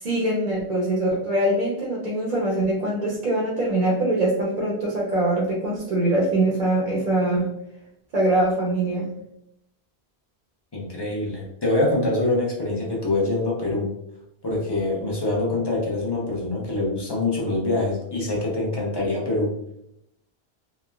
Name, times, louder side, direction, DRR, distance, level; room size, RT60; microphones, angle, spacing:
voice 1, 0.0-7.5 8.1-9.1, right 1 dB, 50° right, -4 dB, 0.6 m, -23 dB
voice 2, 10.7-14.0 14.4-19.5, left 2 dB, 30° left, -3 dB, 0.6 m, -25 dB
3.1 x 2.1 x 2.2 m, 0.77 s
omnidirectional pair, 1.1 m